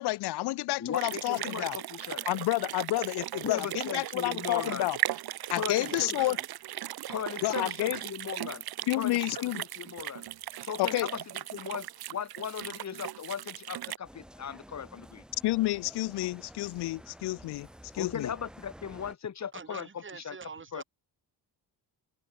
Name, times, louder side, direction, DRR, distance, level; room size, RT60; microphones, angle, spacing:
voice 1, 0.0-1.8 2.3-5.0 5.5-6.4 7.4-8.0 8.9-9.6 10.8-11.1 15.4-17.7 17.9-18.3, left 18 dB, 80° left, 0.6 m, -30 dB
voice 2, 0.8-2.2 3.4-4.9 5.5-6.4 7.1-8.7 8.9-10.3 10.6-11.2 11.5-15.2 18.0-20.4 20.7-20.8, left 7 dB, 45° left, 2.6 m, -38 dB
sound 1, 0.9-14.0, right 13 dB, 70° right, 1.3 m, -37 dB
voice 3, 5.7-6.5 19.5-20.8, right 5 dB, 30° right, 4.4 m, -44 dB
sound 2, 14.0-19.2, equal, ahead, 1.2 m, -51 dB
open air
cardioid pair, 120°, 39 cm